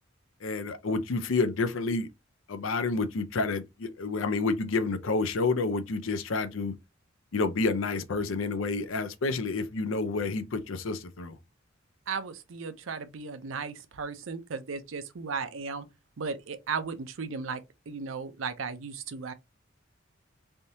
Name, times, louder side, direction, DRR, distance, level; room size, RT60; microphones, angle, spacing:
voice 1, 0.4-2.1 2.5-6.7 7.3-11.4, left 3 dB, 75° left, 0.6 m, -29 dB
voice 2, 12.1-15.9 16.2-17.6 17.9-19.3, right 5 dB, 70° right, 0.6 m, -35 dB
3.4 x 2.7 x 2.7 m
head